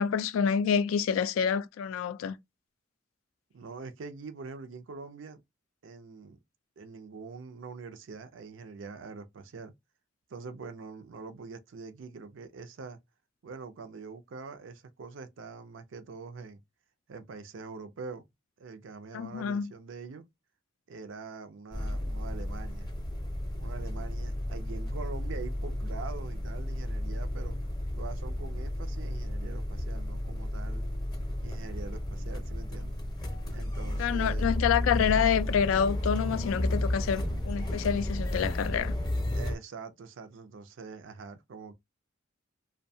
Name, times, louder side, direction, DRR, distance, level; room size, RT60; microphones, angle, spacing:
voice 1, 0.0-2.4 19.1-19.7 34.0-38.9, left 7 dB, 85° left, 0.3 m, -27 dB
voice 2, 3.5-5.4 5.8-6.4 6.8-9.7 10.3-13.0 13.4-16.6 17.1-18.2 18.6-20.3 20.9-22.9 23.6-27.6 28.0-30.8 31.4-33.0 33.5-34.5 39.3-41.7, right 4 dB, 70° right, 0.4 m, -44 dB
sound 1, 21.7-39.6, left 1 dB, 20° left, 0.6 m, -33 dB
2.6 x 2.1 x 2.7 m
head